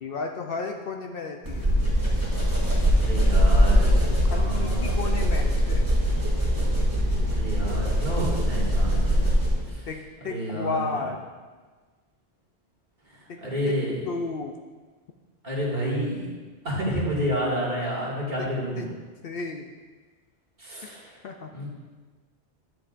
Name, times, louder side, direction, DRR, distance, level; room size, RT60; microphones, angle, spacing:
voice 1, 0.0-1.7 4.1-5.9 9.9-11.3 13.3-13.4 13.7-13.8 14.1-14.6 18.4-18.9 19.2-19.7 21.2-21.5, left 4 dB, 60° left, 3 dB, 0.7 m, -33 dB
sound 1, 1.5-9.7, equal, 15° right, 2.7 m, -22 dB
voice 2, 3.0-5.0 7.3-9.2 9.7-9.8 10.3-10.9 13.4-14.0 15.4-16.3 16.6-18.9 20.6-21.1 21.5-21.7, equal, 45° right, -7 dB, 2.4 m, -29 dB
11.0 x 8.0 x 2.5 m, 1.4 s
omnidirectional pair, 1.1 m